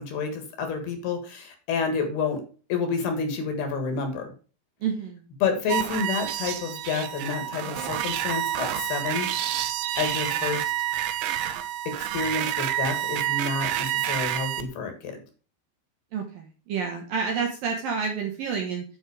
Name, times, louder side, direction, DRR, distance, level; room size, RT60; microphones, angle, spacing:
voice 1, 0.0-2.4 2.7-4.3 5.4-9.3 9.9-10.7 11.9-15.2, left 5 dB, 60° left, 5 dB, 3.4 m, -29 dB
voice 2, 4.8-5.2 16.1-18.8, right 6 dB, 70° right, 1 dB, 2.3 m, -29 dB
sound 1, 5.7-14.6, right 12 dB, 85° right, 3.3 m, -28 dB
9.6 x 6.2 x 4.9 m, 0.37 s
omnidirectional pair, 5.5 m